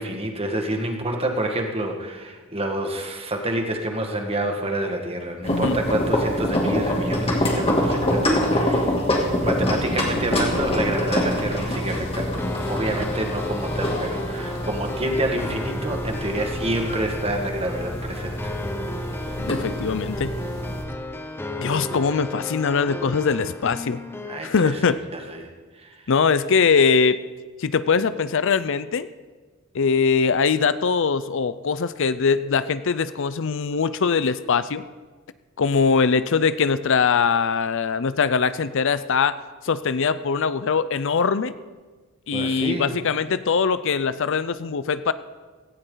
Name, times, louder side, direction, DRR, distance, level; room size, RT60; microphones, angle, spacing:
voice 1, 0.0-9.0 9.4-18.5 18.8-19.4 24.3-25.5 25.8-26.0 42.3-43.0, right 1 dB, 30° right, 3 dB, 1.8 m, -28 dB
sound 1, 5.4-20.8, left 1 dB, 30° left, 2.6 m, -26 dB
voice 2, 5.5-5.8 19.4-20.4 21.6-24.0 24.4-25.0 26.1-27.2 27.6-29.1 29.7-34.8 35.6-39.4 39.6-41.5 42.3-45.1, left 5 dB, 60° left, 14 dB, 0.6 m, -22 dB
sound 2, 12.4-24.4, left 1 dB, 10° left, 0.8 m, -34 dB
17.0 x 16.5 x 3.9 m, 1.4 s
head